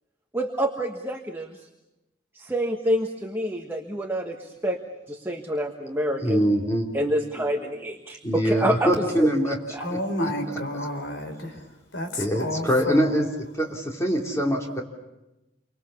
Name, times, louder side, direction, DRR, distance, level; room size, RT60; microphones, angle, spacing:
voice 1, 0.3-1.5 2.3-4.8 5.1-6.4 6.9-8.9 9.2-9.3 9.7-9.8, equal, 10° right, 2 dB, 1.4 m, -27 dB
voice 2, 6.2-6.9 8.2-9.6 9.9-10.3 12.2-13.3 13.6-14.8, equal, 15° left, 0 dB, 3.3 m, -23 dB
voice 3, 9.8-11.6 11.9-13.1, left 1 dB, 65° left, 5 dB, 4.3 m, -30 dB
29.0 x 25.0 x 7.1 m, 0.98 s
head